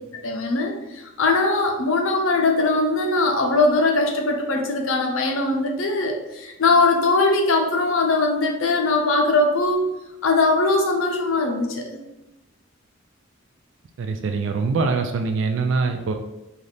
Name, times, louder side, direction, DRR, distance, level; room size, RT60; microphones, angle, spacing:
voice 1, 0.2-9.9 10.2-11.8, left 2 dB, 75° left, 2 dB, 0.6 m, -21 dB
voice 2, 14.0-16.1, right 4 dB, 60° right, 5 dB, 0.3 m, -23 dB
4.1 x 2.4 x 3.3 m, 0.99 s
head